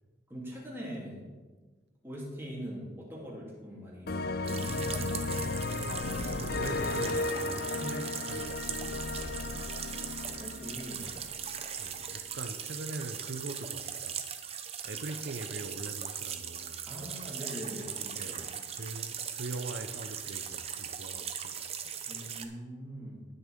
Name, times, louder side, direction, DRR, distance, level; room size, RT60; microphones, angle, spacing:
voice 1, 0.3-1.4 2.0-5.2 10.0-11.2 16.9-18.4 22.1-23.3, equal, 15° right, -5 dB, 3.1 m, -42 dB
sound 1, 4.1-11.7, left 3 dB, 55° left, 0.5 m, -34 dB
sound 2, 4.4-22.5, right 8 dB, 30° right, 0.7 m, -39 dB
voice 2, 5.6-9.6 11.8-14.2 14.8-17.2 18.1-18.5 18.8-21.6, right 3 dB, 70° right, 7 dB, 0.6 m, -42 dB
18.5 x 6.4 x 3.7 m, 1.3 s
head